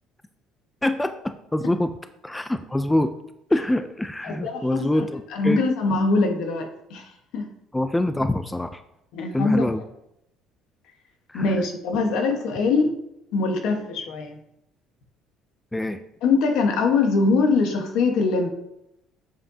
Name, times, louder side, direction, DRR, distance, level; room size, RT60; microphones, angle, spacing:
voice 1, 0.8-1.9 2.2-3.1 3.5-5.6 7.7-8.8 9.3-9.8 11.3-11.5 15.7-16.0, left 1 dB, 5° left, 9 dB, 0.3 m, -25 dB
voice 2, 4.2-5.0 5.3-7.5 9.1-9.7 11.3-12.9 13.3-14.4 16.2-18.5, left 3 dB, 70° left, 4 dB, 1.2 m, -23 dB
7.6 x 7.5 x 2.8 m, 0.82 s
cardioid pair, 145°, 0 cm